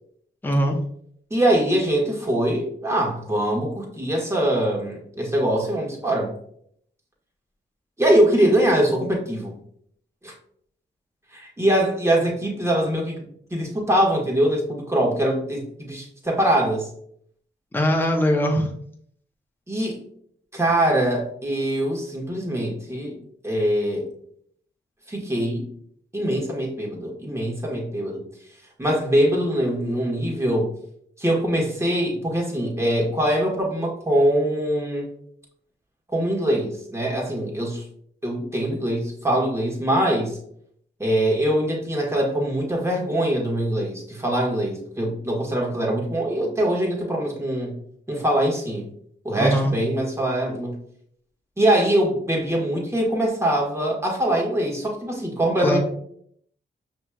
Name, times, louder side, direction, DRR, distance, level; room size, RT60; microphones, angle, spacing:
voice 1, 0.4-0.8 17.7-18.7 49.4-49.7 55.6-55.8, equal, 10° left, 2 dB, 0.8 m, -21 dB
voice 2, 1.3-6.3 8.0-9.5 10.2-10.3 11.3-16.8 19.7-20.0 20.5-23.1 23.4-24.1 25.1-25.7 26.1-28.2 28.8-30.7 31.2-35.1 36.1-37.8 38.2-40.4 41.0-47.7 48.1-48.9 49.2-50.8 51.6-55.8, right 1 dB, 15° right, -2 dB, 1.6 m, -23 dB
5.4 x 3.1 x 2.4 m, 0.66 s
cardioid pair, 55°, 19 cm